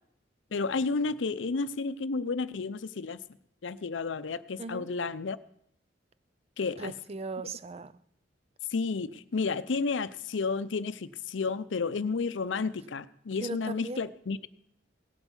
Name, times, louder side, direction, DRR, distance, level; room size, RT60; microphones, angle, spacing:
voice 1, 0.5-3.2 3.6-5.4 6.6-6.9 8.7-14.5, left 4 dB, 85° left, 0.6 m, -31 dB
voice 2, 6.8-8.0 13.4-14.1, right 3 dB, 35° right, 0.5 m, -38 dB
17.5 x 8.2 x 7.1 m
head